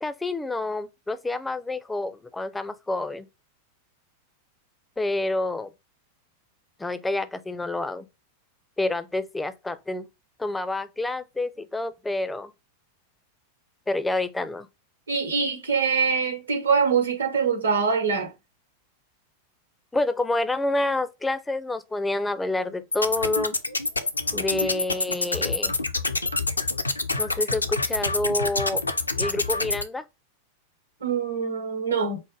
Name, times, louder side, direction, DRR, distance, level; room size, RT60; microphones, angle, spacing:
voice 1, 0.0-3.3 5.0-5.7 6.8-8.1 8.8-10.1 10.4-12.5 13.9-14.7 19.9-23.5 24.3-25.7 27.2-28.8 29.2-30.0, left 2 dB, 10° left, 0.4 m, -28 dB
voice 2, 15.1-18.3 31.0-32.2, right 5 dB, 70° right, 1.0 m, -24 dB
sound 1, 22.9-29.8, left 3 dB, 80° left, 0.4 m, -27 dB
4.6 x 2.1 x 3.2 m
figure-of-eight pair, 90°, 0 cm